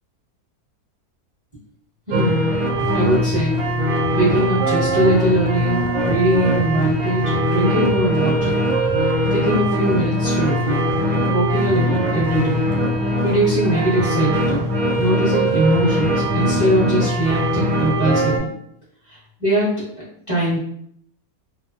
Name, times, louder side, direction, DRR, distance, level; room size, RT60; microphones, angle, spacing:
voice 1, 2.1-2.5 2.9-3.6 4.1-8.6 9.3-10.8 11.3-12.6 13.2-14.7 15.0-18.5 19.4-20.6, right 1 dB, 25° right, -9 dB, 0.9 m, -21 dB
sound 1, 2.1-18.4, equal, 75° right, 1.0 m, -21 dB
3.0 x 2.1 x 2.5 m, 0.67 s
omnidirectional pair, 1.6 m